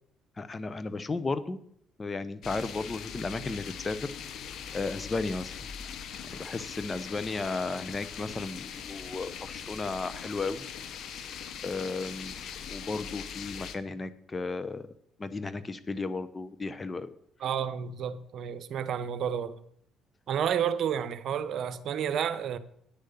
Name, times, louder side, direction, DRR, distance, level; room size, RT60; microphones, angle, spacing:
voice 1, 0.4-1.6 2.0-4.0 4.7-5.6 6.2-10.6 11.6-12.4 12.7-14.9 15.2-17.1, left 3 dB, 30° left, 0.9 m, -34 dB
sound 1, 2.4-13.8, left 7 dB, 65° left, 1.0 m, -41 dB
voice 2, 17.4-19.6 20.3-22.6, right 8 dB, 60° right, 0.8 m, -30 dB
9.8 x 6.5 x 7.0 m
hypercardioid pair, 55°, 0 cm